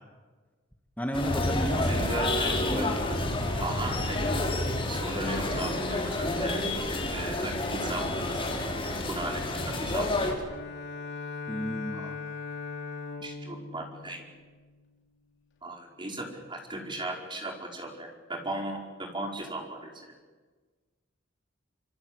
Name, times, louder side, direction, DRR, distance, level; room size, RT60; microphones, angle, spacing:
voice 1, 1.0-1.9 2.7-3.1 11.5-12.1, equal, 10° left, 2 dB, 2.1 m, -32 dB
sound 1, 1.1-10.3, left 2 dB, 30° left, 5.4 m, -29 dB
voice 2, 1.9-2.9 3.4-4.2 4.9-6.7 7.1-8.5 9.1-10.1 11.9-12.2 13.2-14.2 15.6-20.2, right 2 dB, 25° right, 1 dB, 5.1 m, -37 dB
Bowed string instrument, 10.5-15.1, left 4 dB, 65° left, 5.2 m, -40 dB
26.0 x 25.5 x 8.1 m, 1.4 s
head